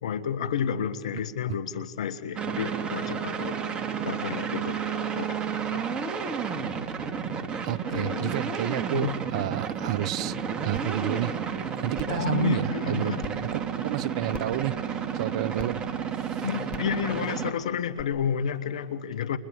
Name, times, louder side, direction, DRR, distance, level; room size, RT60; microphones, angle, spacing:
voice 1, 0.0-3.6 4.0-4.8 5.1-6.0 7.9-8.5 8.9-9.2 12.1-13.3 16.4-19.4, left 7 dB, 75° left, 1.8 m, -31 dB
sound 1, 2.4-17.5, right 7 dB, 30° right, 3.0 m, -31 dB
voice 2, 7.6-10.4 10.6-15.8 16.1-16.4, right 13 dB, 65° right, 0.8 m, -31 dB
sound 2, 10.8-10.9 11.3-11.4 11.9-12.2 13.2-13.3 14.3-14.6 15.6-15.7 16.7-16.9 18.0-18.1, left 9 dB, 35° left, 2.0 m, -40 dB
30.0 x 29.0 x 6.7 m
hypercardioid pair, 100°, 3 cm